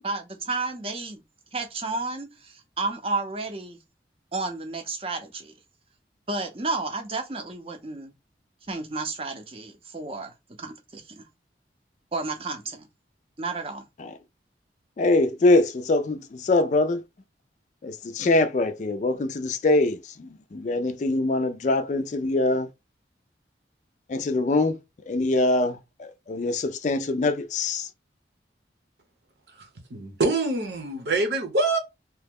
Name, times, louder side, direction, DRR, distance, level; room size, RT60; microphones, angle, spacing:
voice 1, 0.0-1.2 1.5-3.8 4.3-5.5 6.3-8.1 8.7-10.3 10.6-11.3 12.1-12.9 13.4-13.9, right 3 dB, 30° right, 0.6 m, -32 dB
voice 2, 15.0-17.0 17.8-22.7 24.1-24.8 25.1-27.9, left 2 dB, 40° left, 0.3 m, -23 dB
voice 3, 29.9-31.8, right 2 dB, 70° right, 0.9 m, -25 dB
2.9 x 2.1 x 3.5 m
head